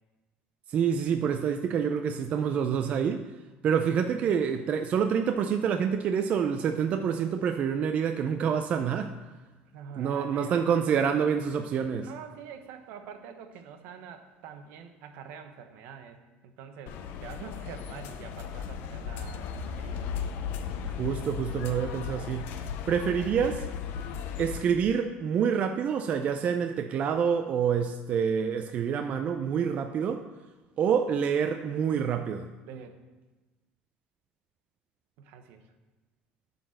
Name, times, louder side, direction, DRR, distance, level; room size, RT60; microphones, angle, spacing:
voice 1, 0.7-3.2 3.6-9.1 10.0-12.1 21.0-22.5 22.9-23.6 24.4-30.2 30.8-32.5, right 7 dB, 40° right, 6 dB, 0.4 m, -27 dB
voice 2, 9.7-11.0 12.0-20.1 32.6-33.0 35.2-35.7, right 7 dB, 70° right, 7 dB, 0.9 m, -46 dB
sound 1, 16.9-24.6, left 7 dB, 65° left, 0.6 m, -36 dB
11.0 x 4.0 x 6.4 m, 1.2 s
cardioid pair, 145°, 4 cm